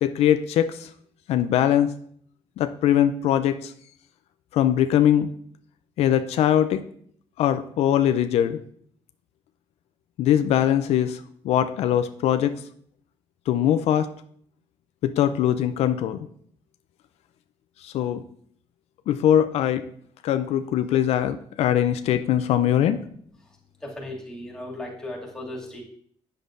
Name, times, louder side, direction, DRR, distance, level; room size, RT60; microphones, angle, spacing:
voice 1, 0.0-0.9 1.3-1.9 2.6-3.7 4.5-5.3 6.0-6.8 7.4-8.6 10.2-11.2 11.4-12.5 13.5-14.1 15.0-16.2 17.8-18.2 19.1-19.8 20.2-23.0, left 10 dB, 80° left, 10 dB, 0.4 m, -21 dB
voice 2, 23.8-25.8, left 1 dB, 5° left, -3 dB, 2.2 m, -36 dB
8.3 x 6.6 x 2.5 m, 0.62 s
cardioid pair, 95°, 11 cm